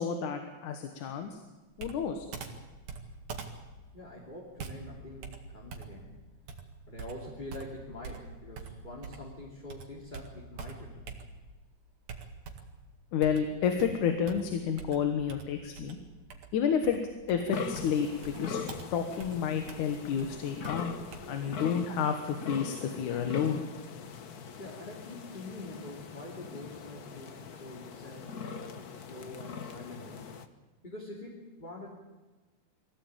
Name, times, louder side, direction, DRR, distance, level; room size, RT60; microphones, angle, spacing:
voice 1, 0.0-1.4 1.8-2.3 13.1-16.0 16.5-17.0 17.3-18.6 18.9-20.9 21.3-23.6, left 7 dB, 85° left, 6 dB, 2.8 m, -30 dB
Computer keyboard, 1.8-9.4 9.7-11.6 12.1-12.8 13.2-21.2, right 5 dB, 70° right, 3.2 m, -45 dB
voice 2, 3.9-6.1 6.9-11.2 24.6-30.2 30.8-31.9, left 1 dB, 15° left, -3 dB, 3.0 m, -45 dB
sound 1, 17.5-30.4, left 6 dB, 65° left, 0.9 m, -41 dB
23.0 x 16.0 x 8.9 m, 1.2 s
omnidirectional pair, 3.4 m